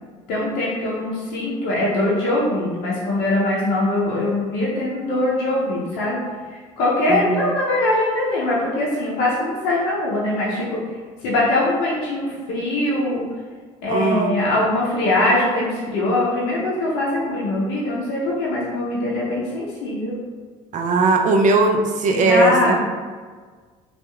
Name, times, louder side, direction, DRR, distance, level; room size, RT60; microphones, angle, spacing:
voice 1, 0.3-6.2 6.8-10.8 11.2-13.2 13.8-20.1 22.1-22.8, left 1 dB, 80° left, -6 dB, 0.6 m, -22 dB
voice 2, 7.1-7.5 13.9-14.4 20.7-22.8, right 3 dB, 50° right, 3 dB, 0.4 m, -19 dB
2.8 x 2.3 x 2.2 m, 1.5 s
supercardioid pair, 70°, 17 cm